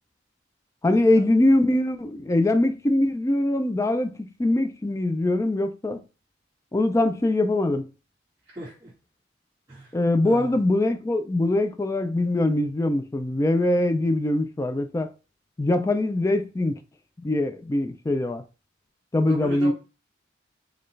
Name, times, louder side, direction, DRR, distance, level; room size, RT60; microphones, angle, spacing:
voice 1, 0.8-6.0 6.7-7.9 9.9-15.1 15.6-16.8 17.2-18.4 19.1-19.7, left 1 dB, 15° left, 0.3 m, -22 dB
voice 2, 8.5-8.9 9.7-10.0 10.2-10.6 19.3-19.7, right 1 dB, 20° right, 1.7 m, -37 dB
4.4 x 2.3 x 3.1 m
head